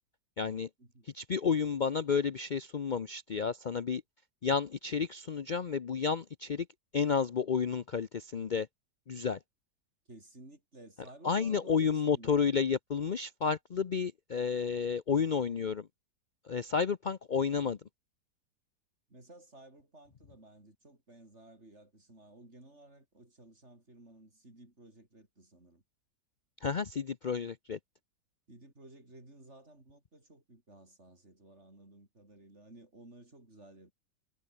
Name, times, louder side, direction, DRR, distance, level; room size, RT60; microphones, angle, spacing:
voice 1, 0.4-0.7 1.1-4.0 4.4-6.7 6.9-8.7 9.1-9.4 11.2-15.9 16.4-17.8 26.6-27.8, left 6 dB, 65° left, 0.4 m, -31 dB
voice 2, 10.1-12.4 19.1-25.8 28.5-33.9, right 2 dB, 40° right, 6.4 m, -55 dB
omnidirectional pair, 1.9 m